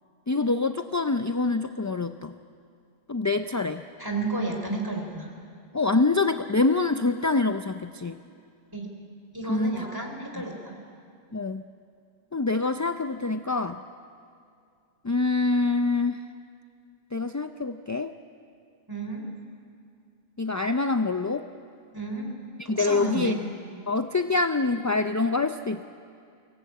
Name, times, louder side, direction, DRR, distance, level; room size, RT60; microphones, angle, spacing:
voice 1, 0.3-2.3 3.1-3.9 5.7-8.2 9.5-9.9 11.3-11.6 12.3-13.8 15.0-16.2 17.1-18.1 20.4-21.5 22.7-23.4 23.9-25.8, left 3 dB, 30° left, 8 dB, 0.3 m, -25 dB
voice 2, 4.0-5.3 8.7-8.9 9.3-10.7 18.9-19.2 21.9-22.3 22.6-23.4, right 2 dB, 20° right, 1 dB, 3.7 m, -32 dB
23.5 x 18.0 x 8.5 m, 2.4 s
omnidirectional pair, 1.0 m